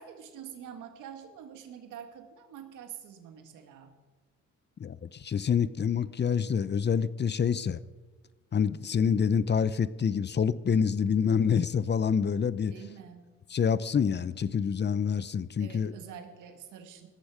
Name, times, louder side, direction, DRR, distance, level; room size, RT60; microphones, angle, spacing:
voice 1, 0.0-3.9 12.7-13.2 15.6-17.1, right 8 dB, 90° right, 7 dB, 2.2 m, -46 dB
voice 2, 4.8-7.8 8.5-12.7 13.5-15.9, left 7 dB, 35° left, 16 dB, 0.7 m, -27 dB
18.0 x 14.0 x 5.0 m, 1.3 s
cardioid pair, 90°, 30 cm